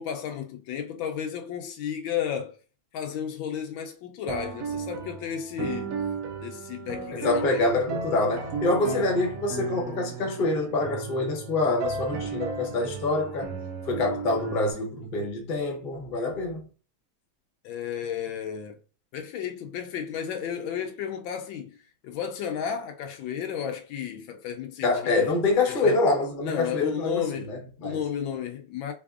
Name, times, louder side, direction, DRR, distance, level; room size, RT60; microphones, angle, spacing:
voice 1, 0.0-2.6 2.9-6.0 6.4-7.8 8.8-9.0 17.6-18.8 19.1-21.8 22.0-25.3 25.7-26.0 26.4-27.5 27.8-28.9, left 8 dB, 80° left, 1.3 m, -33 dB
sound 1, 4.3-14.7, right 5 dB, 75° right, 0.8 m, -35 dB
voice 2, 7.1-13.5 13.8-16.7 24.8-28.0, left 2 dB, 40° left, 0.7 m, -26 dB
3.9 x 3.4 x 2.4 m
omnidirectional pair, 2.2 m